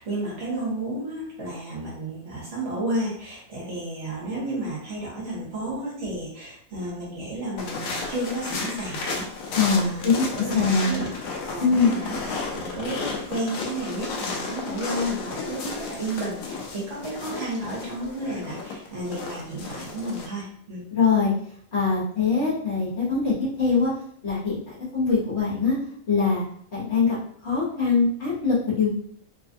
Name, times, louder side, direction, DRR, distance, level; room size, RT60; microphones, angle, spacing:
voice 1, 0.0-10.0 10.3-11.1 11.4-20.8, right 1 dB, 60° right, -6 dB, 1.4 m, -32 dB
sound 1, 7.6-20.3, left 4 dB, 85° left, 1.0 m, -33 dB
voice 2, 9.5-11.0 11.6-11.9 20.9-21.3 21.7-23.9 24.2-24.6 24.9-25.8 26.1-26.4 26.7-27.2 27.4-29.0, left 5 dB, 50° left, -7 dB, 1.3 m, -22 dB
3.2 x 2.3 x 2.6 m, 0.63 s
omnidirectional pair, 1.4 m